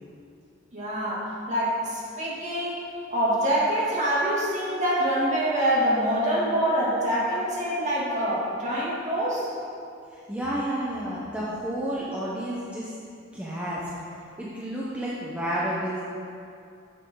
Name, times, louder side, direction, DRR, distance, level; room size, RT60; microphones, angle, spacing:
voice 1, 0.7-9.5, equal, 40° right, -6 dB, 2.6 m, -25 dB
voice 2, 10.1-12.9 13.3-13.8 14.4-16.0, right 1 dB, 5° right, -7 dB, 1.0 m, -30 dB
10.5 x 8.1 x 3.9 m, 2.5 s
head